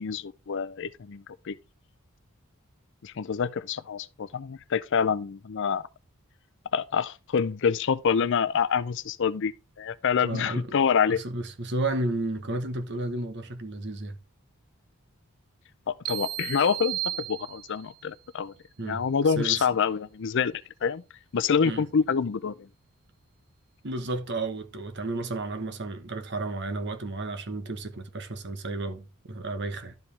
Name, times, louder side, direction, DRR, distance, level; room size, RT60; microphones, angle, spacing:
voice 1, 0.0-1.6 3.0-5.8 6.7-11.2 15.9-18.5 18.8-21.0 21.3-22.7, left 6 dB, 55° left, 0.5 m, -27 dB
voice 2, 10.2-14.2 18.8-19.8 21.6-21.9 23.8-29.9, right 2 dB, 50° right, 1.1 m, -33 dB
sound 1, 16.1-18.0, right 14 dB, 85° right, 0.5 m, -34 dB
12.0 x 5.0 x 3.3 m
head